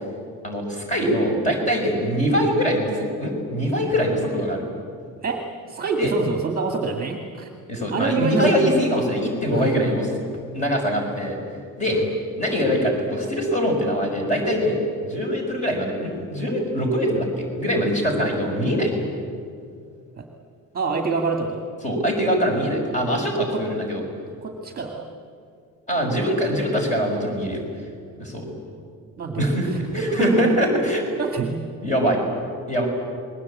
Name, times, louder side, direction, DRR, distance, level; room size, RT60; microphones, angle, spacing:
voice 1, 0.4-4.6 6.0-6.1 7.7-10.1 10.5-11.4 11.8-12.0 12.4-14.8 15.1-19.1 21.8-24.0 25.9-27.6 28.2-28.5 29.4-31.0 31.8-32.2 32.7-32.9, equal, 20° left, 1 dB, 5.7 m, -23 dB
voice 2, 5.7-7.5 7.9-8.5 9.5-9.9 11.9-12.0 20.2-20.3 20.7-21.7 23.5-23.6 24.4-25.1 29.2-30.6 31.2-31.6, right 4 dB, 25° right, 3 dB, 1.9 m, -26 dB
28.5 x 21.0 x 8.6 m, 2.3 s
cardioid pair, 180°, 36 cm